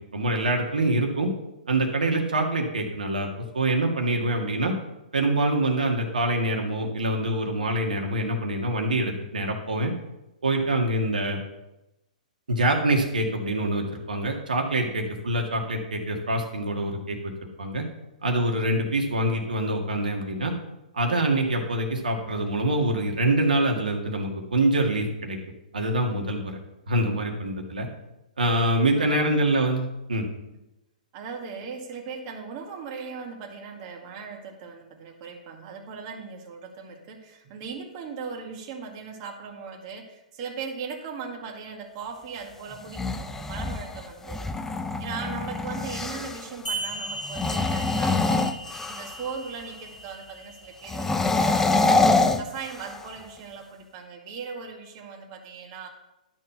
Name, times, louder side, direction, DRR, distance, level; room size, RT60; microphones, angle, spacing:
voice 1, 0.1-1.3 1.7-4.7 5.1-9.9 10.4-11.4 12.5-17.3 17.6-17.8 18.2-20.5 20.9-25.4 25.7-26.6 26.9-27.9 28.4-30.2, right 1 dB, 80° right, 1 dB, 1.7 m, -25 dB
voice 2, 31.1-44.6 45.0-51.9 52.4-55.9, right 5 dB, 40° right, 1 dB, 2.0 m, -39 dB
sound 1, 42.7-46.5 47.2-49.3 50.8-53.1, left 3 dB, 10° left, 0.6 m, -25 dB
sound 2, 46.6-51.7, right 1 dB, 80° left, 2.8 m, -38 dB
12.0 x 4.6 x 6.7 m, 0.94 s
hypercardioid pair, 125°, 5 cm